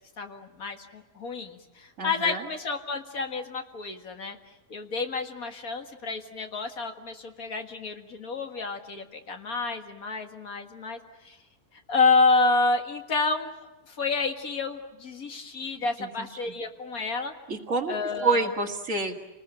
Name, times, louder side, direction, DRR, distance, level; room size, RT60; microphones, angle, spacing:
voice 1, 0.2-4.4 4.7-11.4 11.7-13.5 13.9-17.3 17.9-18.5, left 3 dB, 65° left, 5 dB, 2.2 m, -29 dB
voice 2, 2.0-2.5 16.0-16.3 17.5-17.9 18.2-19.1, right 3 dB, 55° right, 4 dB, 2.3 m, -27 dB
28.5 x 20.0 x 9.1 m, 1.1 s
omnidirectional pair, 1.6 m